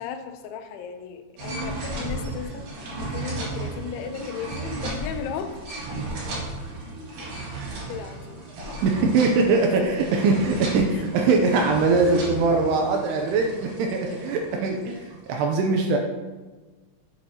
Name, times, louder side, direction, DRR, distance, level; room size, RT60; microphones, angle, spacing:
voice 1, 0.0-2.8 3.1-5.6 7.9-8.4 8.9-9.1 10.9-11.0, left 7 dB, 85° left, 7 dB, 3.1 m, -35 dB
sound 1, 1.4-15.3, right 2 dB, 55° right, 3.4 m, -35 dB
voice 2, 8.8-16.0, right 3 dB, 85° right, 2 dB, 2.4 m, -22 dB
8.9 x 8.0 x 2.9 m, 1.3 s
omnidirectional pair, 5.2 m